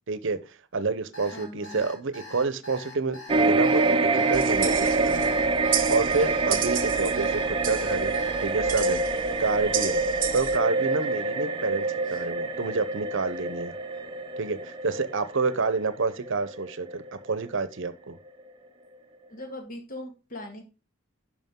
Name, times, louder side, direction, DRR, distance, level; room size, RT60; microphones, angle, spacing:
voice 1, 0.1-0.4 0.7-5.2 5.9-8.1 8.4-9.0 9.4-10.0 10.3-13.7 14.4-18.2, right 4 dB, 65° right, 14 dB, 0.8 m, -28 dB
Alarm, 1.1-8.9, left 2 dB, 65° left, 3.7 m, -44 dB
voice 2, 1.3-1.9 12.0-12.2 19.3-20.6, left 1 dB, 45° left, 3 dB, 1.9 m, -40 dB
sound 1, 3.3-17.9 18.3-18.4, right 3 dB, 25° right, 0.7 m, -26 dB
sound 2, 4.3-10.6, right 9 dB, 45° right, 1.0 m, -33 dB
11.0 x 4.9 x 3.7 m, 0.31 s
head